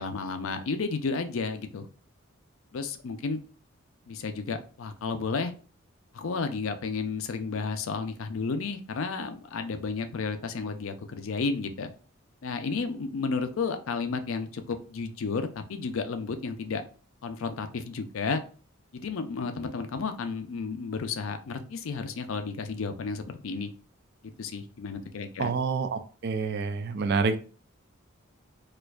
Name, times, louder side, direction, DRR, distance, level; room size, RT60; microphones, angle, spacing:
voice 1, 0.0-1.9 2.7-3.4 4.1-5.5 6.1-11.9 12.4-16.8 17.2-18.4 18.9-23.7 24.4-25.5, left 4 dB, 70° left, 8 dB, 0.5 m, -32 dB
voice 2, 25.4-27.4, right 4 dB, 50° right, 10 dB, 0.4 m, -28 dB
4.3 x 2.5 x 2.3 m, 0.39 s
head